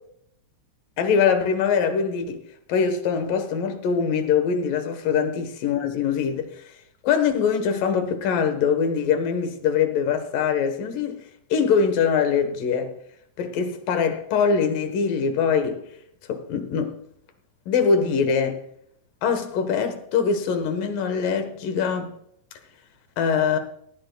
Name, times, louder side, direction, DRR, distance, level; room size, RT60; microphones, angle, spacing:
voice 1, 1.0-2.4 2.7-6.6 7.0-11.2 11.5-12.9 13.4-15.8 16.3-17.0 17.7-18.6 19.2-22.2 23.2-23.6, left 6 dB, 85° left, 3.0 m, -23 dB
19.0 x 14.5 x 2.3 m
omnidirectional pair, 3.8 m